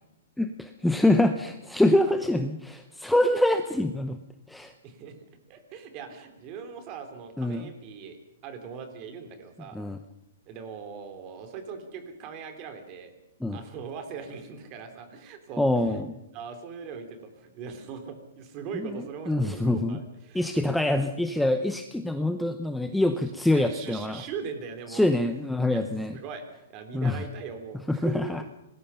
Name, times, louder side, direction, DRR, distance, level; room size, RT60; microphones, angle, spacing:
voice 1, 0.4-4.2 4.5-4.7 7.4-7.7 9.7-10.0 13.4-13.6 15.6-16.1 18.7-20.0 20.3-24.2 24.9-26.2 26.9-27.2 27.9-28.4, left 1 dB, ahead, 6 dB, 0.7 m, -25 dB
voice 2, 4.8-5.2 5.5-8.2 8.4-9.8 10.5-13.1 13.5-15.7 16.3-20.5 23.1-23.2 23.5-25.1 25.7-25.8 26.1-28.4, right 6 dB, 25° right, 7 dB, 3.2 m, -40 dB
25.5 x 20.0 x 5.7 m, 0.92 s
hypercardioid pair, 165°, 0 cm